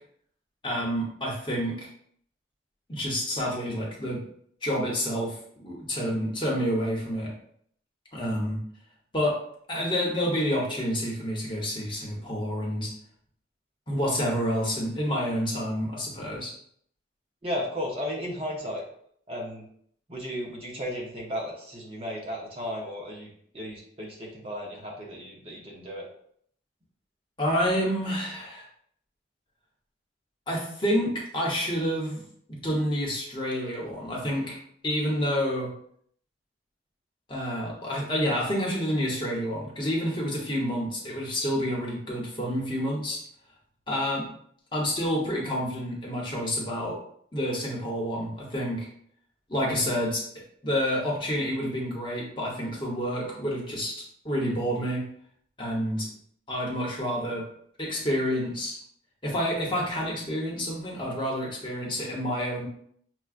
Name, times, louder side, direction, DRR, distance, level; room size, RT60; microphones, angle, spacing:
voice 1, 0.6-1.9 2.9-4.2 4.6-7.3 8.1-8.6 9.1-9.4 9.7-12.9 13.9-16.5 27.4-28.6 30.5-32.2 32.6-34.6 34.8-35.7 37.3-43.2 43.9-44.3 44.7-47.0 47.3-48.9 49.5-50.2 50.6-53.9 54.2-55.0 55.6-56.1 56.5-57.4 57.8-58.8 59.2-62.6, equal, 25° left, -3 dB, 0.9 m, -28 dB
voice 2, 17.4-18.8 19.3-19.6 20.1-26.1, equal, 30° right, -2 dB, 0.7 m, -34 dB
5.8 x 2.2 x 2.4 m, 0.65 s
head